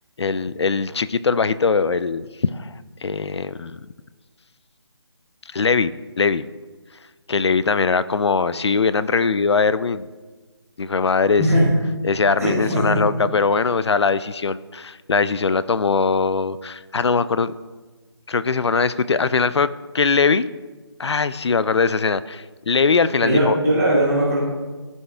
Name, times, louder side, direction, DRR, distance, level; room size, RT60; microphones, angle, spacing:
voice 1, 0.2-3.8 5.5-6.5 7.3-10.1 10.8-11.4 12.0-17.5 18.3-19.7 19.9-20.5 21.0-23.6, left 5 dB, 70° left, 15 dB, 0.5 m, -21 dB
voice 2, 11.4-11.7 12.4-13.0 23.2-24.4, right 1 dB, 5° left, -14 dB, 0.3 m, -19 dB
15.5 x 5.5 x 3.4 m, 1.3 s
figure-of-eight pair, 165°, 15 cm